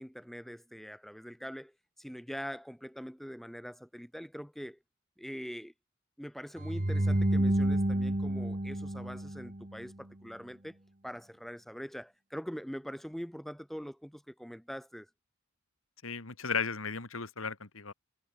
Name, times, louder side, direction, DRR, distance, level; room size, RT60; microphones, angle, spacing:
voice 1, 0.0-4.8 5.2-5.7 6.2-10.8 11.0-15.1, equal, ahead, 4.5 m, -43 dB
sound 1, 6.6-9.8, right 1 dB, 35° right, 1.6 m, -29 dB
voice 2, 16.0-17.9, left 5 dB, 75° left, 2.5 m, -35 dB
head